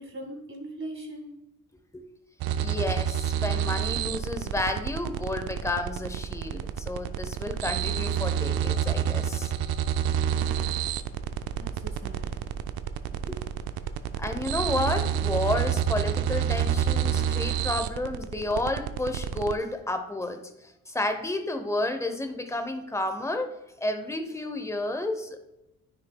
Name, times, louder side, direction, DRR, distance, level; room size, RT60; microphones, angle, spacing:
voice 1, 0.0-1.3 11.5-12.3, right 1 dB, 35° right, 0 dB, 2.0 m, -40 dB
sound 1, 2.4-19.5, right 9 dB, 80° right, 0.5 m, -29 dB
voice 2, 2.6-9.5 13.3-13.4 14.2-25.4, left 2 dB, 10° left, 8 dB, 0.8 m, -31 dB
9.6 x 6.0 x 2.3 m, 0.92 s
cardioid pair, 85°, 37 cm